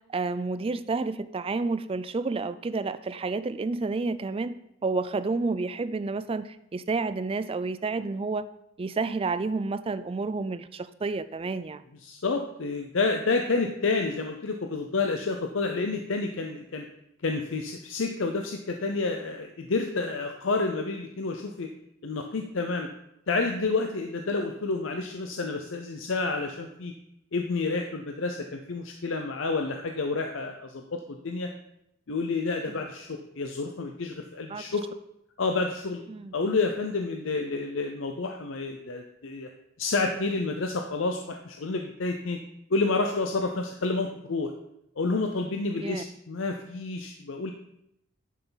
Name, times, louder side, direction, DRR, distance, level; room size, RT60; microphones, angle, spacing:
voice 1, 0.1-4.5 4.8-8.5 8.8-11.9 32.7-32.8 34.5-34.6 36.1-36.3 45.8-46.0, right 3 dB, 25° right, 13 dB, 0.3 m, -30 dB
voice 2, 12.0-16.8 17.2-21.7 22.0-22.9 23.3-26.9 27.3-31.5 32.1-34.9 35.4-36.0 36.3-39.5 39.8-42.4 42.7-44.5 45.0-47.5, left 3 dB, 65° left, 4 dB, 0.6 m, -29 dB
11.0 x 5.7 x 4.0 m, 0.79 s
head